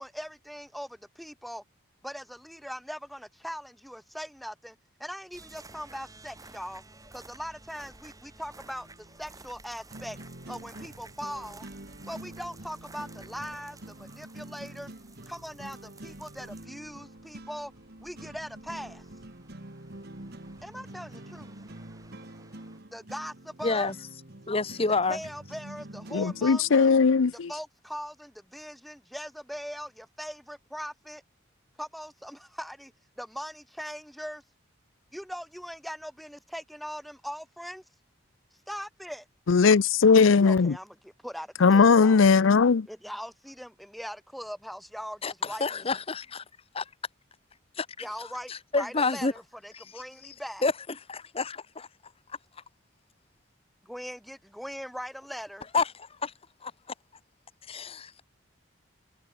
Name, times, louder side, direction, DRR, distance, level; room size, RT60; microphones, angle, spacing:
voice 1, 0.0-1.6 2.0-4.7 5.0-6.8 7.1-8.9 9.2-10.2 10.5-11.7 12.1-14.9 15.3-17.7 18.0-19.0 20.6-21.5 22.9-23.9 24.9-26.9 27.5-31.2 31.8-32.9 33.2-34.4 35.1-37.8 38.7-39.2 40.4-42.2 42.9-46.0 48.0-50.6 53.8-55.7, equal, ahead, 1.5 m, -40 dB
sound 1, 5.3-22.8, right 3 dB, 20° right, 6.1 m, -53 dB
sound 2, 8.5-27.3, right 1 dB, 55° right, 2.1 m, -47 dB
voice 2, 24.5-25.2 45.2-45.3 45.6-46.2 46.8-46.9 47.8-47.9 48.5-49.3 49.7-49.8 50.6-50.7 51.1-51.9 55.7-55.9 56.6-56.7 57.7-58.2, left 3 dB, 30° left, 1.0 m, -28 dB
voice 3, 26.1-27.5 39.5-40.7 41.6-42.9, left 5 dB, 80° left, 0.5 m, -19 dB
head